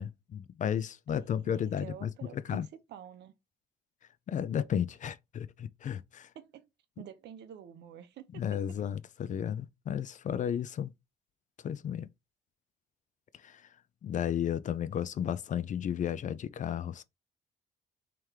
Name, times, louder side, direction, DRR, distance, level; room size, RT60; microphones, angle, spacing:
voice 1, 0.0-2.7 4.3-6.3 8.3-10.9 11.6-12.1 13.4-13.6 14.0-17.0, left 9 dB, 45° left, 0.4 m, -33 dB
voice 2, 1.1-3.3 6.3-6.7 7.0-8.3, right 9 dB, 70° right, 0.6 m, -48 dB
3.2 x 3.0 x 3.5 m
cardioid pair, 75°, 18 cm